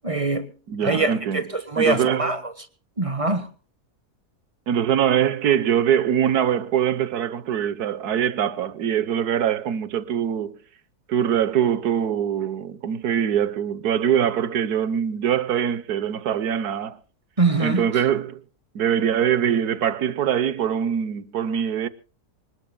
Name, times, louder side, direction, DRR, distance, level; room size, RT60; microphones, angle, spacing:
voice 1, 0.0-0.5 0.8-2.5 3.0-3.5 17.4-17.9, right 3 dB, 25° right, 1.3 m, -23 dB
voice 2, 0.7-1.4 1.8-2.4 4.7-10.6 11.1-17.0 17.6-18.4 18.7-21.9, right 9 dB, 80° right, 1.5 m, -23 dB
26.5 x 19.5 x 2.3 m
omnidirectional pair, 1.6 m